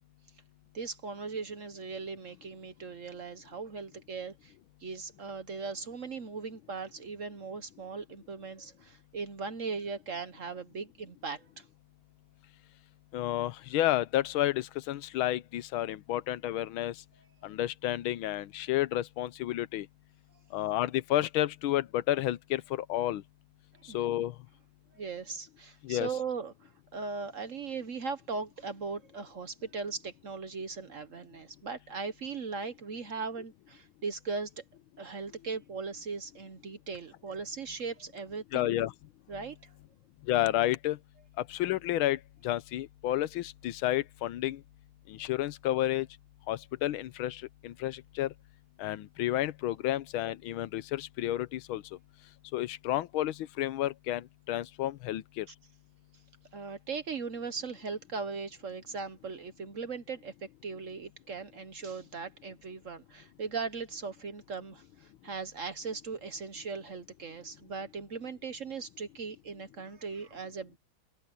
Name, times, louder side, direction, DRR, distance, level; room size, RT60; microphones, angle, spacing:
voice 1, 0.7-4.5 4.8-11.6 23.7-24.0 24.9-34.6 35.0-38.7 39.3-39.7 56.5-70.8, right 4 dB, 50° right, 1.1 m, -39 dB
voice 2, 13.1-17.0 17.4-19.9 20.5-23.2 23.9-24.3 25.8-26.1 38.5-38.9 40.3-41.0 41.4-44.6 45.1-46.1 46.5-48.3 48.8-51.8 52.5-55.5, left 14 dB, 90° left, 1.5 m, -31 dB
omnidirectional pair, 2.2 m